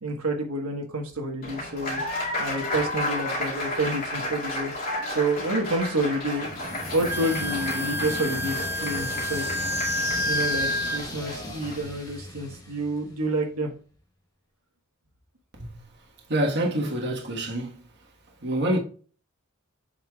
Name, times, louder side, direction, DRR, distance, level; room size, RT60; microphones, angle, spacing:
voice 1, 0.0-2.0 2.4-4.7 5.1-6.5 6.9-9.6 10.3-13.7, right 1 dB, 80° right, 1.4 m, -29 dB
Applause, 1.4-11.8, left 1 dB, 45° left, 2.2 m, -33 dB
sound 1, 6.4-13.3, left 2 dB, 15° left, 1.2 m, -36 dB
Wind instrument woodwind instrument, 7.1-11.0, left 1 dB, 10° right, 0.3 m, -29 dB
voice 2, 16.3-17.8 18.4-18.8, right 1 dB, 55° right, 1.4 m, -26 dB
7.6 x 5.7 x 2.3 m
head